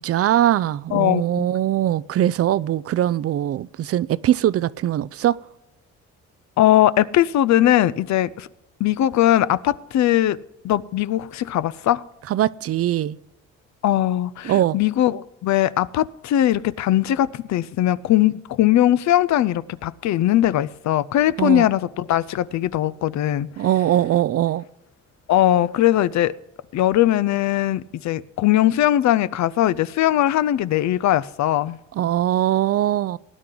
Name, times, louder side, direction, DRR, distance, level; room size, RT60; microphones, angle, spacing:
voice 1, 0.0-5.4 12.3-13.2 14.4-14.8 21.4-21.7 23.6-24.6 32.0-33.2, right 12 dB, 50° right, 20 dB, 0.4 m, -21 dB
voice 2, 0.9-1.5 6.6-8.5 8.8-10.4 10.6-12.0 13.8-23.5 25.3-26.3 26.7-31.8, left 13 dB, 70° left, 17 dB, 0.5 m, -20 dB
18.5 x 9.9 x 3.9 m, 0.89 s
cardioid pair, 90°, 30 cm